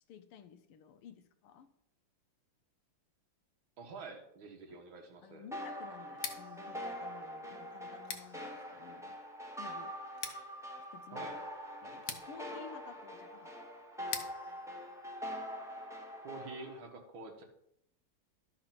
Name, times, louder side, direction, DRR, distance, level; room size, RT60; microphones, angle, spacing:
voice 1, 0.1-1.7 5.2-9.9 10.9-11.3 11.8-13.6, left 7 dB, 85° left, 9 dB, 1.7 m, -54 dB
voice 2, 3.8-5.5 11.1-11.4 16.2-17.4, right 3 dB, 65° right, 4 dB, 2.1 m, -47 dB
sound 1, 5.5-16.8, equal, ahead, 0.8 m, -44 dB
Scissors, 6.1-15.9, left 6 dB, 50° left, 0.9 m, -49 dB
12.0 x 4.9 x 5.9 m, 0.75 s
omnidirectional pair, 2.4 m